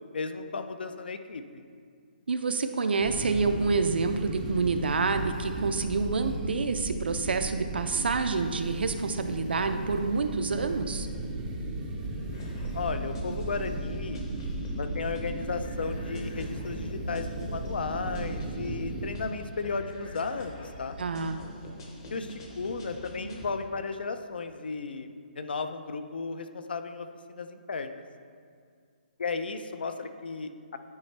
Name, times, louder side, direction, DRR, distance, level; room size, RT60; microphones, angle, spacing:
voice 1, 0.1-1.6 12.0-14.2 14.8-21.0 22.1-28.0 29.2-30.8, left 4 dB, 70° left, 9 dB, 0.5 m, -35 dB
voice 2, 2.3-11.1 21.0-21.4, right 4 dB, 85° right, 8 dB, 0.5 m, -28 dB
sound 1, 3.0-19.1, right 2 dB, 10° right, 0.4 m, -36 dB
sound 2, 12.3-23.5, equal, 30° left, 0.8 m, -44 dB
9.7 x 4.2 x 3.2 m, 2.2 s
hypercardioid pair, 170°, 5 cm